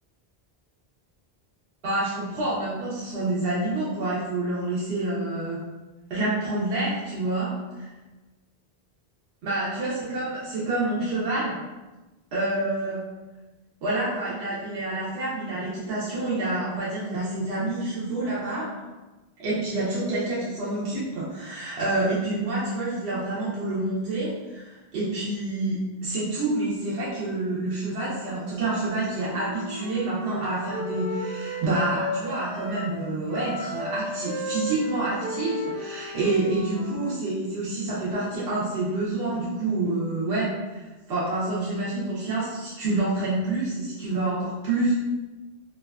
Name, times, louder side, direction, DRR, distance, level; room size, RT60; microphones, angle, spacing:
voice 1, 1.8-5.6 6.1-7.9 9.4-11.6 12.3-13.2 13.8-18.9 19.4-44.9, right 2 dB, 80° right, -8 dB, 0.9 m, -28 dB
Wind instrument woodwind instrument, 29.3-33.0 33.3-37.2, left 1 dB, 55° right, 1.0 m, -34 dB
2.6 x 2.2 x 2.3 m, 1.2 s
omnidirectional pair, 1.1 m